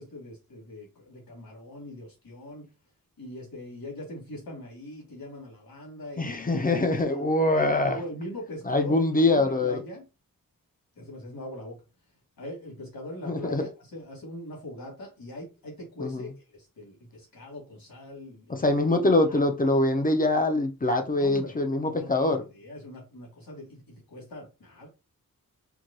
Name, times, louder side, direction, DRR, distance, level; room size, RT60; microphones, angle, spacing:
voice 1, 0.0-2.7 3.2-7.3 7.9-10.1 11.0-11.8 12.4-18.6 18.9-19.4 21.2-24.9, left 1 dB, 80° left, 1.9 m, -42 dB
voice 2, 6.2-8.0 8.7-9.8 13.3-13.7 16.0-16.3 18.5-22.4, left 2 dB, 25° left, 0.4 m, -24 dB
4.6 x 2.2 x 2.6 m
wide cardioid pair, 130°, 35 cm